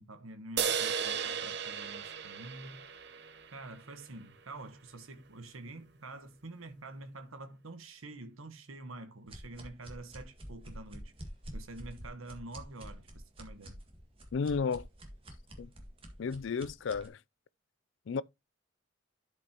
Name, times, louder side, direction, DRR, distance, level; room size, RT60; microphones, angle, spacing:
voice 1, 0.0-2.9 3.5-11.1 11.5-13.8, right 2 dB, 90° right, 1.3 m, -47 dB
sound 1, 0.6-4.0, right 7 dB, 55° right, 0.9 m, -35 dB
sound 2, 9.3-17.1, equal, 25° right, 1.8 m, -48 dB
voice 2, 14.3-14.9 15.6-15.7 16.2-17.2 18.1-18.2, left 5 dB, 65° left, 0.4 m, -32 dB
12.0 x 5.2 x 2.9 m
head